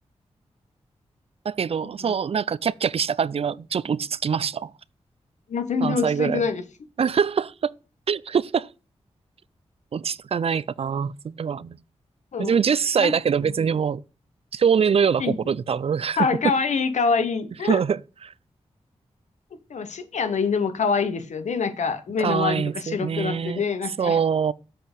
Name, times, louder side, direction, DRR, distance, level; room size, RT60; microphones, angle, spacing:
voice 1, 1.5-4.7 5.8-6.4 7.0-7.7 8.1-8.7 9.9-11.8 12.4-14.0 14.5-16.3 17.6-18.3 22.2-23.6 24.0-24.5, right 7 dB, 55° right, 0.4 m, -24 dB
voice 2, 5.5-6.6 12.3-12.6 13.0-13.1 13.4-13.7 15.2-15.4 16.2-17.8 19.7-24.2, left 5 dB, 80° left, 1.0 m, -25 dB
7.3 x 4.4 x 5.1 m
cardioid pair, 50°, 12 cm